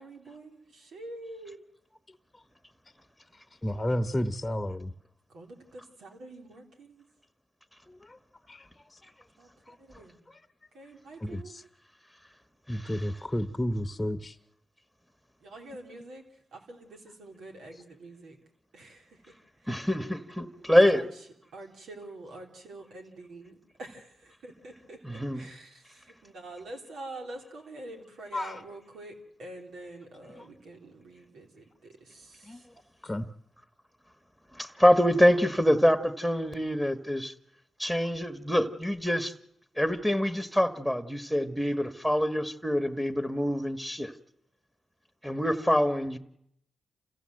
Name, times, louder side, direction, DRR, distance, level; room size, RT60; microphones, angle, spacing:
voice 1, 0.0-1.6 5.3-7.0 9.4-10.2 10.7-11.5 15.4-16.2 16.5-18.4 18.7-19.3 19.6-19.9 20.6-21.1 21.5-32.7, right 2 dB, 85° right, 2 dB, 3.5 m, -46 dB
voice 2, 3.6-4.9 7.9-8.2 8.5-8.6 9.7-9.8 10.3-10.4 11.2-11.6 12.7-14.4 28.3-28.6 30.4-30.5 32.4-32.6 33.0-33.3, left 1 dB, 20° left, 10 dB, 1.0 m, -32 dB
voice 3, 12.7-13.1 19.7-21.0 25.0-25.5 34.5-37.3 37.8-39.3 39.8-44.1 45.2-46.2, equal, 5° right, 9 dB, 1.5 m, -25 dB
28.0 x 15.5 x 7.8 m, 0.79 s
cardioid pair, 50°, 0 cm